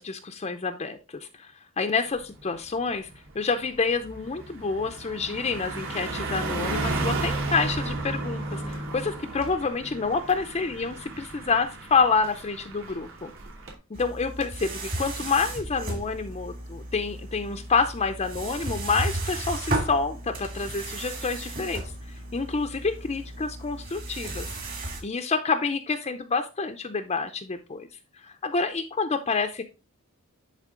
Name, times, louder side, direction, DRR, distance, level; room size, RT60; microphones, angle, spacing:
voice 1, 0.0-3.1 3.3-13.3 13.9-24.5 25.0-27.9 28.1-29.6, left 4 dB, 30° left, 6 dB, 0.5 m, -28 dB
Car passing by, 2.2-2.4 2.8-13.7, right 2 dB, 65° right, 2.7 m, -33 dB
sound 1, 13.9-25.0, right 2 dB, 40° right, 2.4 m, -34 dB
11.0 x 3.7 x 3.7 m, 0.30 s
head